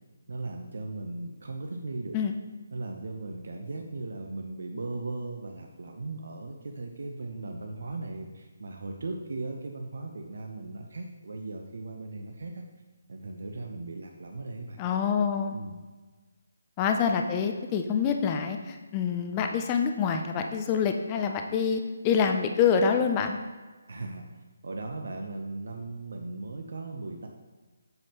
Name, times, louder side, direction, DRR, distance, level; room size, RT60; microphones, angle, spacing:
voice 1, 0.3-2.2 2.7-12.6 13.1-14.8 15.5-15.8 23.9-24.2 24.6-27.3, right 2 dB, 65° right, 3 dB, 0.7 m, -37 dB
voice 2, 14.8-15.6 16.8-23.4, left 6 dB, 15° left, 5 dB, 0.3 m, -26 dB
7.9 x 5.4 x 2.9 m, 1.3 s
hypercardioid pair, 175°, 0 cm